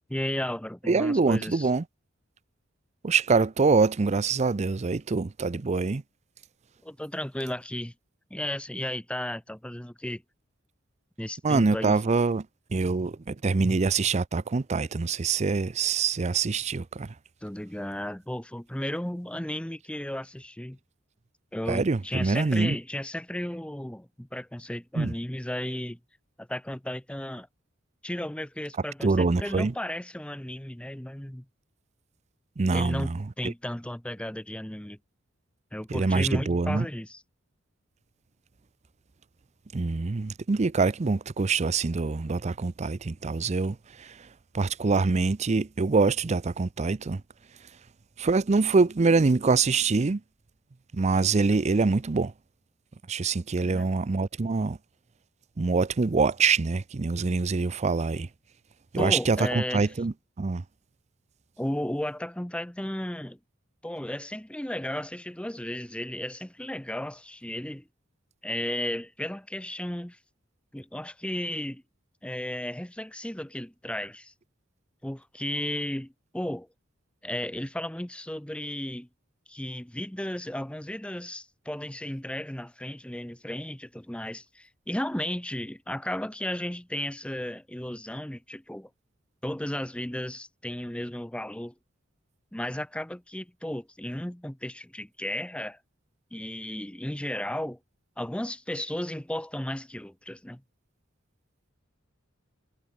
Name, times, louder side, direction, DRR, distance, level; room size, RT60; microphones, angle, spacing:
voice 1, 0.1-1.7 6.8-7.9 8.3-10.2 11.2-12.0 17.4-20.8 21.5-26.0 26.4-27.5 28.0-31.4 32.7-33.1 33.4-35.0 35.7-37.2 53.6-53.9 59.0-59.9 61.6-63.4 63.8-67.9 68.4-70.2 70.7-71.8 72.2-74.3 75.0-76.7 77.2-79.1 79.5-88.9 89.4-91.7 92.5-95.8 96.3-97.8 98.2-100.6, left 1 dB, 5° left, 0.8 m, -34 dB
voice 2, 0.9-1.8 3.0-6.0 11.4-12.5 12.7-17.1 21.7-22.8 25.0-25.1 29.0-29.7 32.6-33.5 35.9-36.9 39.7-44.1 44.5-47.2 48.2-50.2 50.9-52.3 53.1-54.8 55.6-58.3 58.9-60.6, right 4 dB, 35° right, 0.5 m, -25 dB
head